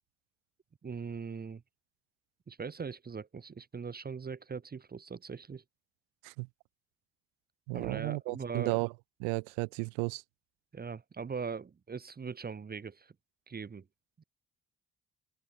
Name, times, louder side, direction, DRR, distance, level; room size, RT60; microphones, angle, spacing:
voice 1, 0.8-1.6 2.5-5.6 7.7-8.8 10.7-13.1 13.5-13.9 14.2-14.3, right 5 dB, 30° right, 1.4 m, -40 dB
voice 2, 7.7-8.9 9.2-10.2, right 40 dB or more, 75° right, 1.6 m, -33 dB
open air
figure-of-eight pair, 45°, 31 cm